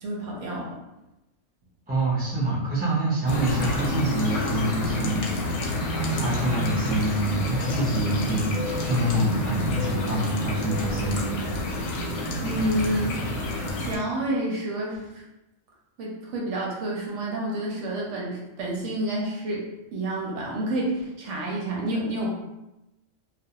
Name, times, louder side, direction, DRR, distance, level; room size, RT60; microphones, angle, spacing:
voice 1, 0.0-0.8 12.4-13.2 13.8-15.2 16.0-19.7 19.9-22.5, right 1 dB, 70° right, -3 dB, 0.8 m, -29 dB
voice 2, 1.9-5.3 6.2-11.4, right 1 dB, 15° right, -7 dB, 0.3 m, -26 dB
sound 1, 3.3-14.0, left 1 dB, 70° left, 0.8 m, -28 dB
2.4 x 2.1 x 2.8 m, 0.97 s
omnidirectional pair, 1.4 m